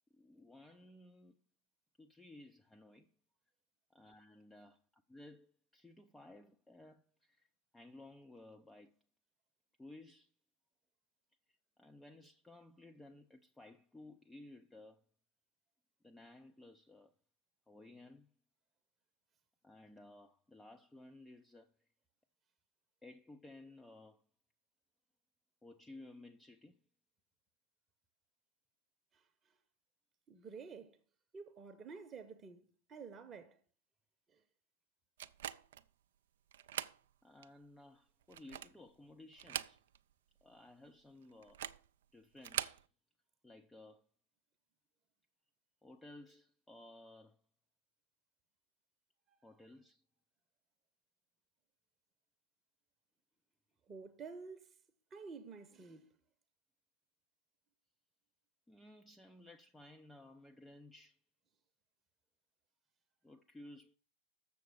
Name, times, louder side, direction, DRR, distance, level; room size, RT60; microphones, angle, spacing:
voice 1, 0.1-1.4 2.0-3.1 3.9-9.0 9.8-10.3 11.5-15.0 16.0-17.1 17.7-18.3 19.6-21.9 23.0-24.2 25.6-26.8 37.2-39.8 40.4-41.7 42.1-42.9 43.4-44.1 45.8-47.4 49.4-50.0 58.7-61.2 63.2-64.0, left 2 dB, 5° left, 0.5 m, -57 dB
voice 2, 30.3-31.0 31.3-33.6 34.3-34.4 53.9-54.7 55.1-56.2, right 5 dB, 20° right, 0.8 m, -50 dB
sound 1, 35.2-35.9 36.5-37.0 37.4-37.5 38.2-38.8 39.3-40.1 40.4-40.5 41.4-41.9 42.4-42.8, right 10 dB, 60° right, 0.4 m, -42 dB
6.9 x 6.7 x 6.6 m
figure-of-eight pair, 90°, 0 cm